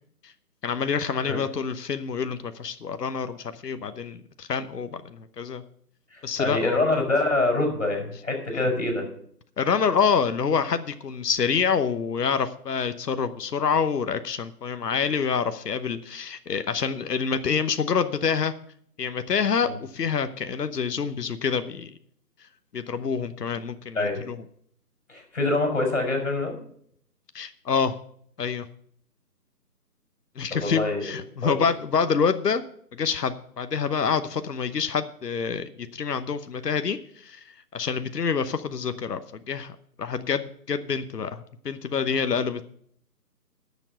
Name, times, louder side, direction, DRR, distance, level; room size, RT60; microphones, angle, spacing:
voice 1, 0.6-5.6 6.2-7.0 8.5-8.7 9.6-18.5 19.0-21.9 22.7-24.4 27.3-28.0 28.4-28.7 30.4-32.6 32.9-37.4 37.7-39.7 40.0-42.6, left 6 dB, 70° left, 10 dB, 1.0 m, -27 dB
voice 2, 6.1-9.1 19.6-19.7 23.9-24.2 25.1-26.6 30.5-31.1 31.4-31.7, left 2 dB, 50° left, 2 dB, 5.2 m, -25 dB
9.8 x 7.2 x 7.8 m, 0.64 s
figure-of-eight pair, 170°, 49 cm